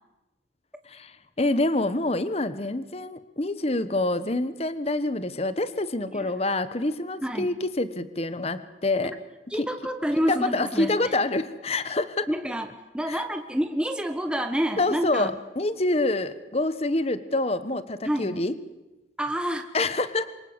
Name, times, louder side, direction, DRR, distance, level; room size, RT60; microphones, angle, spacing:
voice 1, 0.9-9.1 9.6-9.7 10.3-12.3 13.1-13.2 14.8-18.5 19.7-20.3, left 2 dB, 35° left, 13 dB, 1.2 m, -26 dB
voice 2, 7.2-7.5 9.0-9.2 9.5-11.1 12.3-12.7 12.9-15.3 18.0-18.4 19.2-19.7, equal, 5° right, 6 dB, 1.2 m, -28 dB
27.5 x 24.0 x 8.0 m, 1.1 s
head